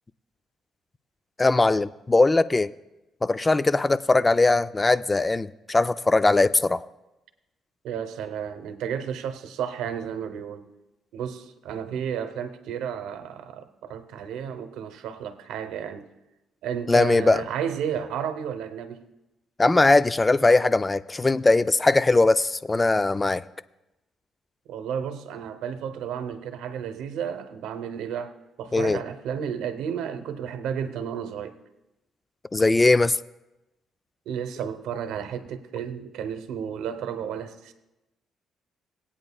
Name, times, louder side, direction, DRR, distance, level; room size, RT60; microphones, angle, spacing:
voice 1, 1.4-2.7 3.2-6.9 16.9-17.4 19.6-23.5 28.7-29.0 32.5-33.2, left 2 dB, 20° left, 0.3 m, -20 dB
voice 2, 7.8-10.7 11.1-16.1 16.6-19.1 24.7-31.6 34.3-37.7, right 8 dB, 90° right, 0.8 m, -32 dB
20.5 x 8.8 x 2.3 m
cardioid pair, 90°, 0 cm